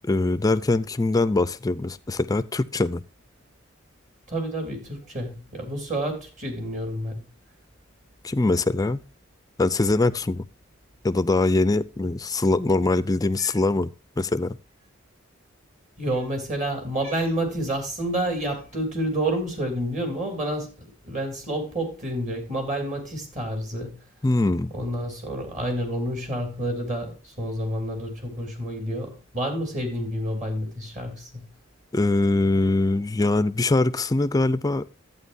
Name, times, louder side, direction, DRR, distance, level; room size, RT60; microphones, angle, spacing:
voice 1, 0.1-3.0 8.2-9.0 9.6-10.5 11.0-13.9 14.2-14.6 24.2-24.7 31.9-34.8, left 2 dB, 20° left, 0.4 m, -22 dB
voice 2, 4.3-7.2 16.0-20.7 21.0-24.0 24.7-31.5, right 1 dB, 40° right, 3.1 m, -29 dB
Cat, 13.2-13.7 14.7-14.9 16.0-16.3 16.9-17.4 18.4-18.7, right 2 dB, 80° right, 4.9 m, -49 dB
11.5 x 8.9 x 2.6 m
head